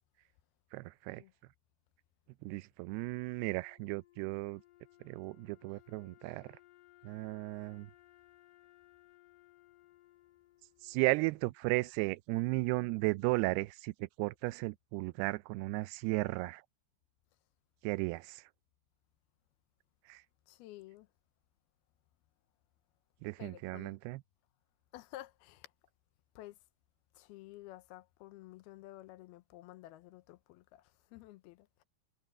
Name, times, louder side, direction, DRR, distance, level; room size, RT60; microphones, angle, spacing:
voice 1, 0.7-1.2 2.4-4.6 5.0-6.6 7.0-7.9 10.8-16.6 17.8-18.5 20.1-20.2 23.2-24.2, right 22 dB, 90° right, 2.6 m, -35 dB
Wind instrument woodwind instrument, 2.8-11.9, left 16 dB, 60° left, 2.9 m, -64 dB
voice 2, 20.5-21.1 23.4-24.0 24.9-25.7 26.4-26.6 27.1-31.8, left 16 dB, 80° left, 2.7 m, -52 dB
omnidirectional pair, 4.5 m